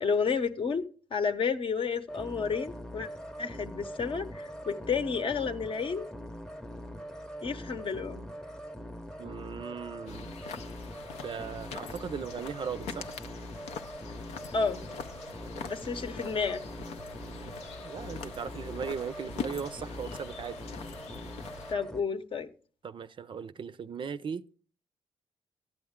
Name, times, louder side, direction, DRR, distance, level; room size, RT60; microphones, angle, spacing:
voice 1, 0.0-3.1 3.4-6.1 7.4-8.2 14.5-14.8 15.7-16.6 21.7-22.5, left 5 dB, 50° left, 0.8 m, -31 dB
sound 1, 2.1-22.0, equal, 5° left, 0.7 m, -43 dB
voice 2, 9.2-10.4 11.2-13.1 17.8-20.6 22.8-24.4, right 6 dB, 45° right, 0.4 m, -38 dB
sound 2, 10.1-21.7, left 6 dB, 90° left, 0.5 m, -43 dB
11.5 x 8.0 x 3.6 m
supercardioid pair, 60°, 11 cm